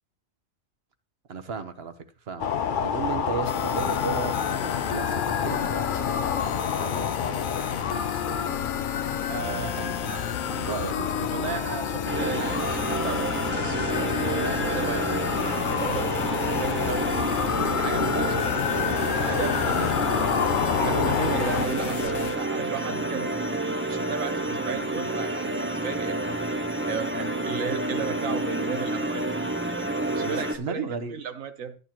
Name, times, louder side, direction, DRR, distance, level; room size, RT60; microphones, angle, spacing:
voice 1, 1.3-1.9 2.3-7.5 7.9-8.5 9.5-11.5 17.9-18.4 19.3-20.3 21.0-21.4 30.2-31.2, right 5 dB, 50° right, 9 dB, 1.2 m, -36 dB
sound 1, 2.4-21.7, left 7 dB, 55° left, 0.6 m, -29 dB
sound 2, 3.4-22.4, left 9 dB, 85° left, 1.1 m, -33 dB
voice 2, 9.3-9.8 11.3-16.1 16.4-17.3 17.7-18.4 19.2-20.3 20.8-23.5 23.9-26.6 26.9-29.8 30.1-31.8, right 6 dB, 80° right, 8 dB, 1.4 m, -35 dB
sound 3, 12.1-30.6, right 2 dB, 10° right, 0.6 m, -29 dB
13.0 x 9.5 x 3.0 m, 0.38 s
omnidirectional pair, 1.4 m